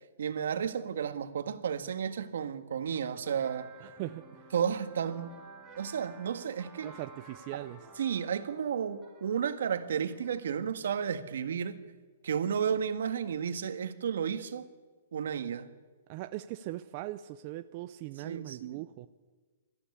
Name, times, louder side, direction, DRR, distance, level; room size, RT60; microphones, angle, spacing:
voice 1, 0.2-3.7 4.5-5.4 5.8-6.9 7.5-7.7 8.0-11.8 12.2-14.7 15.1-15.7 18.2-18.8, right 7 dB, 70° right, 1.7 m, -32 dB
sound 1, 3.2-10.9, right 3 dB, 5° right, 5.2 m, -53 dB
voice 2, 3.8-4.2 6.8-7.9 16.1-19.1, right 15 dB, 35° right, 0.6 m, -40 dB
22.5 x 14.5 x 9.8 m
hypercardioid pair, 160°, 0 cm